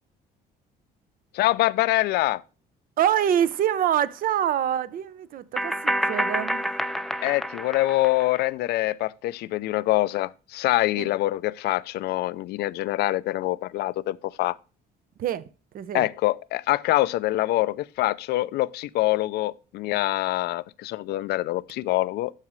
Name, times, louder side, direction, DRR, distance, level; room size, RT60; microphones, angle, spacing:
voice 1, 1.3-2.4 7.2-14.6 15.9-22.3, left 17 dB, 75° left, 0.5 m, -25 dB
voice 2, 3.0-6.7 11.0-11.1 15.2-15.5 15.7-16.1, right 10 dB, 55° right, 0.7 m, -25 dB
sound 1, 3.5-3.6 5.6-8.4, equal, ahead, 0.4 m, -28 dB
13.0 x 4.9 x 3.1 m
cardioid pair, 110°, 17 cm